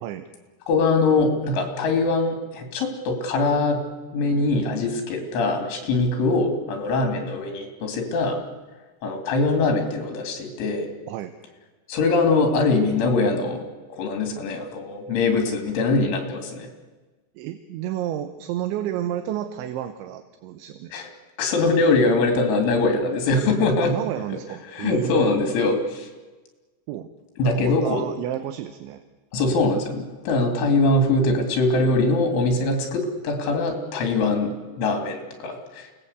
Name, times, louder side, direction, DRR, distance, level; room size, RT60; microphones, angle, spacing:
voice 1, 0.7-3.8 4.1-8.4 9.0-10.9 11.9-13.6 13.9-16.7 20.9-21.1 21.4-23.9 24.7-26.1 27.4-28.0 29.3-35.9, left 3 dB, 75° left, 4 dB, 5.1 m, -22 dB
voice 2, 17.4-20.9 23.8-25.3 26.9-27.1 27.4-29.0, right 11 dB, 80° right, 8 dB, 3.2 m, -31 dB
28.0 x 19.0 x 8.2 m, 1.3 s
omnidirectional pair, 5.6 m